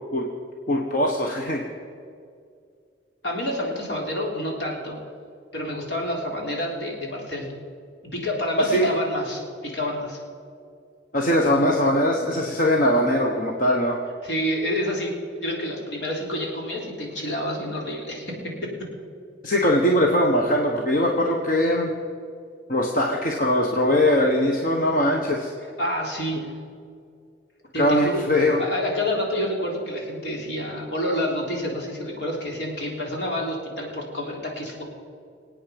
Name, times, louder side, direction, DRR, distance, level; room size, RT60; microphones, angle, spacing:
voice 1, 0.7-1.6 8.6-8.9 11.1-14.0 19.4-21.9 22.7-25.5 27.8-28.6, left 1 dB, 50° left, 0 dB, 1.3 m, -21 dB
voice 2, 3.2-5.0 5.5-7.5 8.1-10.2 14.2-15.1 15.4-18.7 25.8-26.4 27.7-28.2 28.6-34.8, left 1 dB, 75° left, -1 dB, 3.6 m, -28 dB
25.5 x 8.9 x 5.3 m, 2.3 s
head